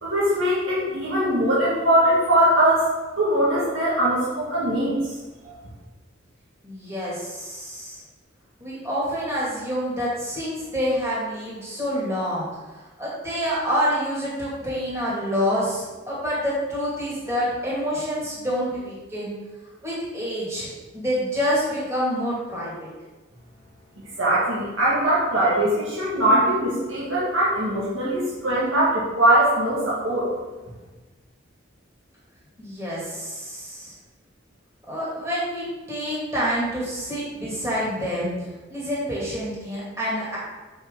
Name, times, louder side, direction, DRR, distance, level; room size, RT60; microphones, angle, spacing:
voice 1, 0.0-2.9 3.2-5.0 5.4-5.5 24.2-30.3, right 1 dB, 80° right, -8 dB, 1.9 m, -21 dB
voice 2, 6.6-8.0 8.6-12.5 12.8-19.3 19.8-20.7 20.9-22.9 32.6-33.9 34.9-38.3 38.7-40.4, equal, 15° right, -8 dB, 2.3 m, -27 dB
7.1 x 5.1 x 3.8 m, 1.2 s
head